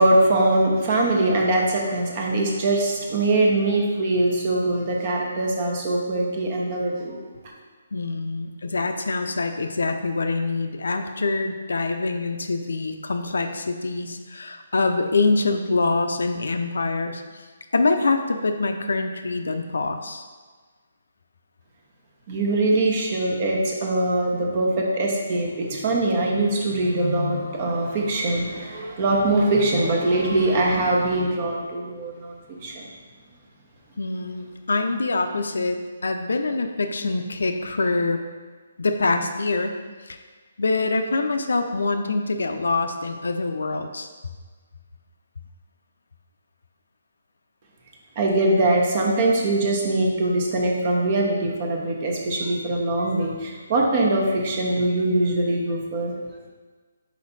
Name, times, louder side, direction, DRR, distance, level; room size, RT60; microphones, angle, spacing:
voice 1, 0.0-7.1 22.3-32.3 32.6-32.8 48.2-56.1, right 2 dB, 35° right, -1 dB, 1.0 m, -22 dB
voice 2, 7.9-17.2 17.7-20.2 34.0-38.2 38.8-39.8 40.0-40.2 40.6-44.1, left 3 dB, 85° left, 6 dB, 0.6 m, -25 dB
5.1 x 4.6 x 4.1 m, 1.4 s
hypercardioid pair, 160°, 0 cm